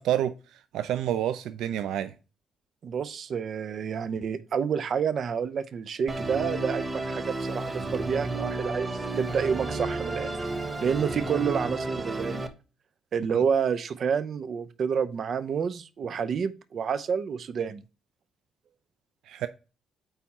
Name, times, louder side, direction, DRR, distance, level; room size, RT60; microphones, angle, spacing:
voice 1, 0.0-2.1 13.3-13.4 19.3-19.5, right 11 dB, 85° right, 0.4 m, -29 dB
voice 2, 2.8-10.3 10.8-12.5 13.1-17.8, right 6 dB, 55° right, 0.7 m, -29 dB
Musical instrument, 6.1-12.5, right 2 dB, 20° right, 1.0 m, -32 dB
9.0 x 3.5 x 4.2 m
cardioid pair, 90°, 0 cm